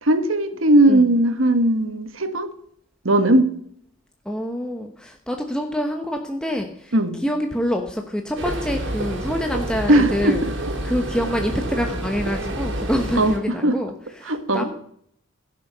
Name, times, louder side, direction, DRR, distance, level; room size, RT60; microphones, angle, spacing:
voice 1, 0.0-2.5 3.0-3.5 6.9-7.2 9.9-10.4 13.2-13.4 13.6-13.7 14.3-14.7, right 1 dB, 75° right, 9 dB, 1.5 m, -18 dB
voice 2, 4.3-10.5 10.8-14.7, equal, 5° left, 3 dB, 1.0 m, -26 dB
sound 1, 8.4-13.4, right 1 dB, 60° right, 2.8 m, -28 dB
16.0 x 6.8 x 6.7 m, 0.67 s
head